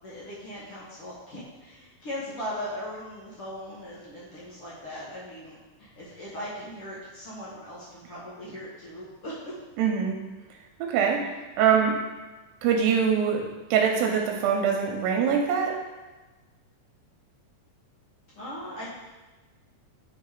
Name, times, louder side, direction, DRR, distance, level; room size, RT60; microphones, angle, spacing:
voice 1, 0.0-9.5 18.3-18.9, equal, 60° left, -7 dB, 1.5 m, -39 dB
voice 2, 9.8-10.2 10.8-11.3 11.6-12.0 12.6-15.8, right 7 dB, 90° right, 2 dB, 2.4 m, -23 dB
7.0 x 3.8 x 4.7 m, 1.2 s
omnidirectional pair, 4.1 m